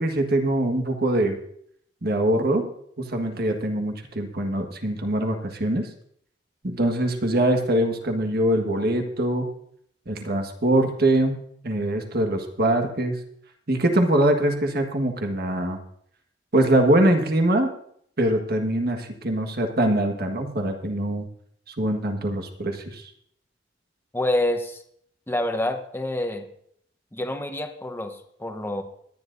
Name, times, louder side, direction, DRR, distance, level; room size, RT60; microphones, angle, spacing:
voice 1, 0.0-1.4 2.0-2.7 3.0-5.9 6.6-9.5 10.1-11.4 11.6-13.1 13.7-15.8 16.5-17.7 18.2-21.3 21.8-23.0, right 1 dB, 55° right, 5 dB, 1.6 m, -23 dB
voice 2, 24.1-24.8 25.3-26.5 27.1-28.8, left 1 dB, 10° left, 5 dB, 1.0 m, -27 dB
21.5 x 10.0 x 2.6 m, 0.67 s
head